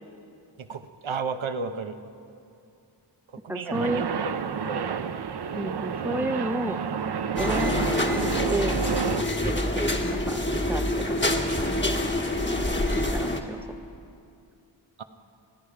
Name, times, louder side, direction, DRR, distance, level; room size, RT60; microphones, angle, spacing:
voice 1, 0.6-2.0 3.3-4.1 4.5-5.3 15.0-15.1, right 5 dB, 90° right, 9 dB, 0.8 m, -33 dB
voice 2, 3.5-4.0 5.5-6.8 7.4-7.7 8.5-9.0 9.4-12.2 12.9-13.6, right 1 dB, 5° right, 10 dB, 0.6 m, -32 dB
sound 1, 3.7-9.2, right 7 dB, 60° right, 0.6 m, -30 dB
sound 2, 7.4-13.4, left 1 dB, 25° left, 1.3 m, -26 dB
29.0 x 10.0 x 4.9 m, 2.5 s
wide cardioid pair, 60°, 46 cm